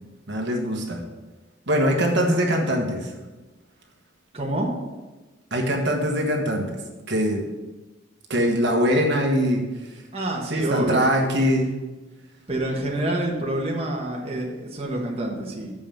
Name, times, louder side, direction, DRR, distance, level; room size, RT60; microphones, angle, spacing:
voice 1, 0.3-1.0 1.7-3.1 5.5-6.8 7.1-7.4 8.3-9.6 10.5-11.7, equal, 60° right, 1 dB, 1.3 m, -22 dB
voice 2, 4.3-4.7 10.1-11.0 12.5-15.7, right 1 dB, 30° right, -2 dB, 1.3 m, -27 dB
6.9 x 5.6 x 7.2 m, 1.2 s
head